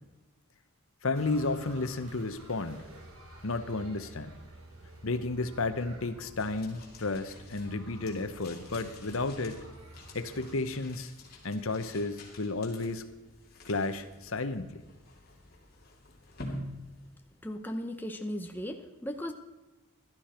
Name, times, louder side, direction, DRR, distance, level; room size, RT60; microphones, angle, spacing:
voice 1, 1.0-2.9 3.4-4.4 5.0-9.6 10.1-11.1 11.4-13.0 13.7-14.8, left 3 dB, 70° left, 10 dB, 0.9 m, -32 dB
sound 1, 1.1-10.5, right 1 dB, 85° right, 3.2 m, -51 dB
sound 2, 6.4-17.7, left 1 dB, 45° left, 2.8 m, -48 dB
voice 2, 17.4-19.3, equal, 10° left, 5 dB, 0.8 m, -37 dB
15.5 x 12.5 x 4.4 m, 1.1 s
head